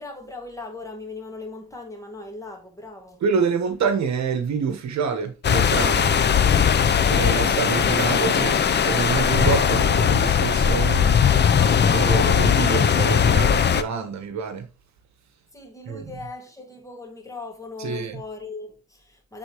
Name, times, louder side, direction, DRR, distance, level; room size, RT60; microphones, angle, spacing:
voice 1, 0.0-3.2 15.5-19.4, left 3 dB, 10° left, 2.0 m, -39 dB
voice 2, 3.2-6.1 7.1-8.5 8.8-11.1 11.9-14.7 15.9-16.1 17.8-18.2, right 6 dB, 65° right, 1.2 m, -26 dB
sound 1, 5.4-13.8, left 7 dB, 35° left, 0.6 m, -19 dB
7.9 x 3.9 x 3.0 m
cardioid pair, 90°, 30 cm